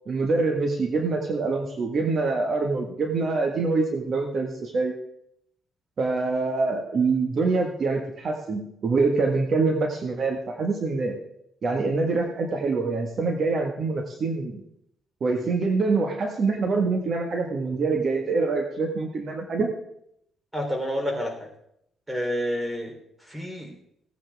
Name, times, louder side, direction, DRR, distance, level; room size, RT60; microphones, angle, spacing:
voice 1, 0.1-4.9 6.0-11.2 11.6-14.6 15.2-19.7, right 3 dB, 50° right, 2 dB, 1.7 m, -25 dB
voice 2, 20.5-21.3 22.1-22.9 23.3-23.7, equal, 10° right, 1 dB, 3.6 m, -28 dB
17.0 x 9.4 x 3.6 m, 0.75 s
cardioid pair, 90°, 0 cm